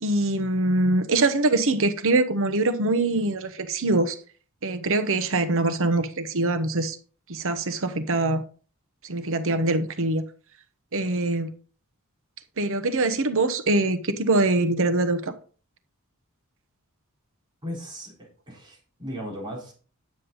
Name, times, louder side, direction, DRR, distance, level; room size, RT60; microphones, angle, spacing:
voice 1, 0.0-4.2 4.6-7.0 7.3-8.4 9.0-10.2 10.9-11.5 12.6-15.3, right 2 dB, 65° right, 1.0 m, -23 dB
voice 2, 17.6-19.7, equal, 20° right, 4.2 m, -37 dB
9.5 x 7.6 x 4.0 m
head